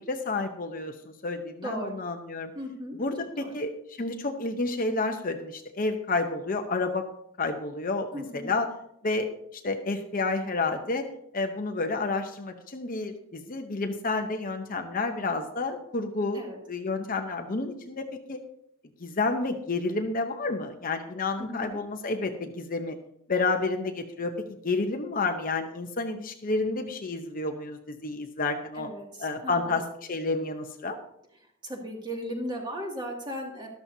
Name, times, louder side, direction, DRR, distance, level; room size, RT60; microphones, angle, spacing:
voice 1, 0.1-2.5 3.0-7.1 7.4-8.7 9.0-11.1 11.3-16.4 16.7-18.4 19.0-23.0 23.3-24.3 24.6-28.9 29.2-31.0, left 3 dB, 40° left, 5 dB, 0.8 m, -30 dB
voice 2, 1.6-2.0 2.5-3.0 3.4-3.6 8.1-8.5 16.3-16.6 21.4-21.8 28.7-29.8 31.6-33.7, equal, 20° right, -1 dB, 2.3 m, -36 dB
13.0 x 12.5 x 2.8 m, 0.74 s
head